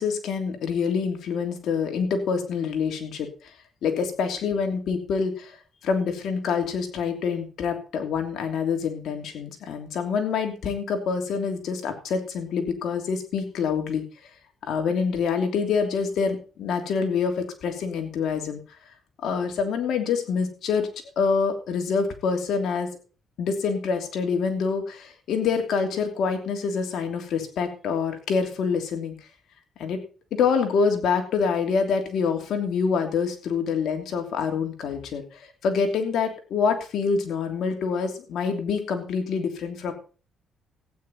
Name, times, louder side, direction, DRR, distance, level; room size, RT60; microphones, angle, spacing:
voice 1, 0.0-3.5 3.8-5.6 5.8-14.0 14.6-18.6 19.2-20.9 21.2-22.9 23.4-29.1 29.8-30.0 30.4-39.9, left 5 dB, 75° left, 5 dB, 3.0 m, -26 dB
15.0 x 9.5 x 4.3 m, 0.36 s
cardioid pair, 90°, 0 cm